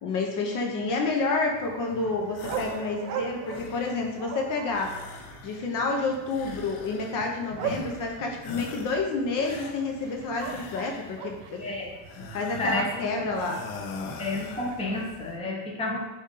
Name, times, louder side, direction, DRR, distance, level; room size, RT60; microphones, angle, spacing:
voice 1, 0.0-5.0 5.4-11.6 12.3-13.6, left 3 dB, 50° left, 1 dB, 0.7 m, -29 dB
sound 1, 1.5-15.4, right 7 dB, 75° right, 0.8 m, -41 dB
sound 2, 2.3-2.9 3.3-4.1 4.7-5.8 6.3-7.3 7.6-8.1 8.4-9.1 9.4-11.3 12.0-13.0 13.3-14.8, left 4 dB, 85° left, 0.7 m, -42 dB
voice 2, 11.6-11.9 12.6-13.5 14.2-16.0, left 2 dB, 15° left, -2 dB, 0.8 m, -31 dB
5.4 x 2.6 x 3.7 m, 1.2 s
cardioid pair, 135°, 41 cm